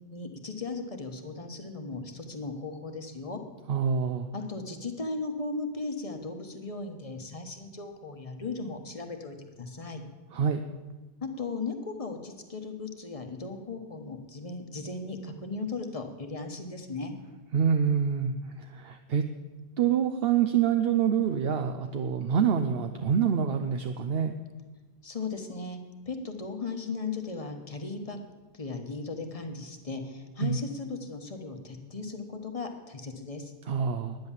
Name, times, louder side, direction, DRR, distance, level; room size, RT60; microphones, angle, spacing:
voice 1, 0.0-3.4 4.3-10.0 11.2-17.1 25.0-25.8 26.1-28.2 28.5-33.5, left 3 dB, 35° left, 5 dB, 1.3 m, -37 dB
voice 2, 3.7-4.3 10.3-10.6 17.5-19.3 19.8-24.4 30.4-30.6 33.7-34.2, right 7 dB, 70° right, 7 dB, 0.9 m, -26 dB
11.0 x 9.6 x 7.3 m, 1.2 s
omnidirectional pair, 1.1 m